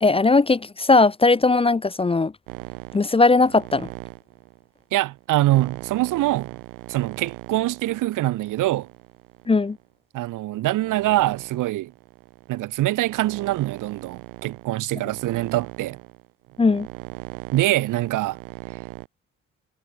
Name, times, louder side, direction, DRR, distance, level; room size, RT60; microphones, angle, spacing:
voice 1, 0.0-2.3 2.9-3.9 9.5-9.8 16.6-16.9, left 3 dB, 20° left, 0.5 m, -18 dB
sound 1, 2.5-9.8 10.5-19.1, right 31 dB, 90° right, 2.1 m, -40 dB
voice 2, 4.9-6.5 6.9-8.9 10.1-11.9 12.5-16.0 17.5-18.4, right 16 dB, 70° right, 0.8 m, -24 dB
hypercardioid pair, 50°, 32 cm